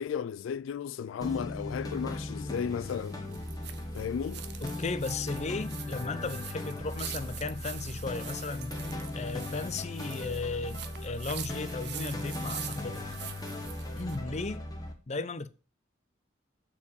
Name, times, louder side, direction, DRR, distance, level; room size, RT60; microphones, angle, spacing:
voice 1, 0.0-3.2 3.9-4.4, left 7 dB, 90° left, 0.3 m, -34 dB
sound 1, 1.2-14.9, left 2 dB, 20° left, 1.6 m, -38 dB
sound 2, 2.0-14.2, right 10 dB, 60° right, 0.8 m, -45 dB
voice 2, 4.6-8.8 9.1-13.0 14.0-14.6 15.1-15.5, left 3 dB, 35° left, 0.6 m, -36 dB
7.2 x 4.7 x 6.9 m
head